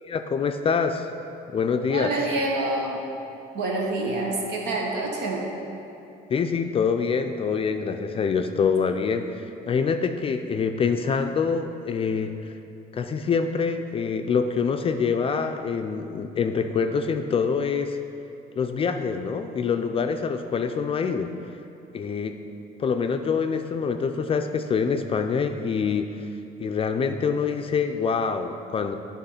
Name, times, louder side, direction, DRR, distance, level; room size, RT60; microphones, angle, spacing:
voice 1, 0.0-1.1 1.5-2.1 6.3-12.5 12.9-18.0 18.6-21.3 21.9-22.4 22.8-26.3 26.6-28.9, left 5 dB, 35° left, 6 dB, 0.4 m, -25 dB
voice 2, 1.9-3.0 3.5-5.5, right 2 dB, 75° right, -1 dB, 1.4 m, -27 dB
9.6 x 3.6 x 5.6 m, 2.8 s
cardioid pair, 110°, 17 cm